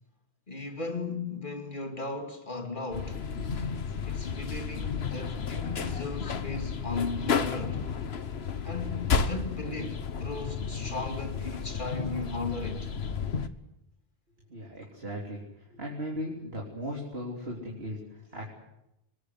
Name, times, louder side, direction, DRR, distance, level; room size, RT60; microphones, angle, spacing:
voice 1, 0.5-3.3 4.1-7.9 8.6-12.9, left 3 dB, 50° left, 2.7 m, -36 dB
sound 1, 2.9-13.5, left 6 dB, 90° left, 1.4 m, -32 dB
voice 2, 14.5-15.4 15.7-18.5, equal, 75° right, 3.9 m, -37 dB
25.5 x 20.5 x 8.2 m
omnidirectional pair, 1.0 m